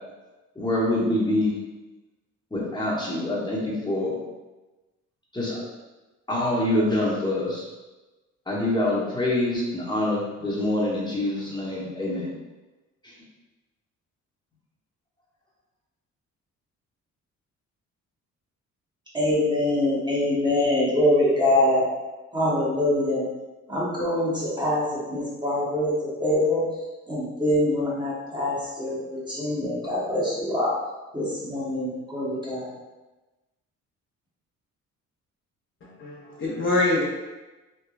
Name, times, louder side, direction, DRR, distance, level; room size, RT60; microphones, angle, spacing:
voice 1, 0.6-1.5 2.5-4.1 5.3-5.6 6.3-7.7 8.5-12.3 13.0-13.1, left 1 dB, 15° left, -6 dB, 0.9 m, -25 dB
voice 2, 19.1-21.8 22.3-23.2 23.7-26.6 27.1-30.7 31.1-32.7, left 1 dB, 15° right, -7 dB, 1.0 m, -24 dB
voice 3, 35.8-37.0, left 2 dB, 40° left, -5 dB, 0.6 m, -25 dB
3.2 x 2.2 x 2.3 m, 1.1 s
cardioid pair, 90°, 30 cm